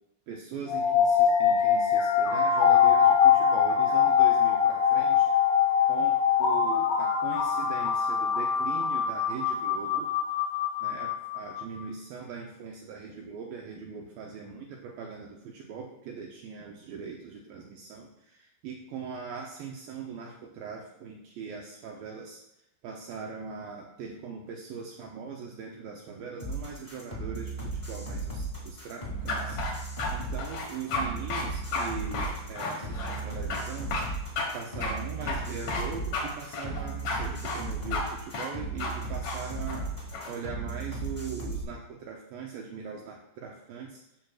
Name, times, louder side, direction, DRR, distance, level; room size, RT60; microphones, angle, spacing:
voice 1, 0.3-5.3 5.9-10.1 10.8-22.4 22.8-33.9 34.5-39.9 40.3-44.0, right 6 dB, 80° right, 0 dB, 2.1 m, -40 dB
sound 1, 0.7-11.6, left 7 dB, 85° left, 3.8 m, -23 dB
sound 2, 26.4-41.6, right 3 dB, 20° left, 0.9 m, -36 dB
sound 3, 29.3-30.1 30.4-31.0 31.3-31.5 31.7-31.9 32.1-33.2 33.5-33.6 33.9-34.1 34.4-34.5 34.8-34.9 35.3-35.8 36.1-36.3 36.5-37.2 37.4-37.6 37.9-38.0 38.3-38.5 38.8-38.9 39.2-39.4 39.7-40.3, left 3 dB, 60° left, 2.1 m, -32 dB
11.5 x 6.2 x 2.3 m, 0.82 s
omnidirectional pair, 4.7 m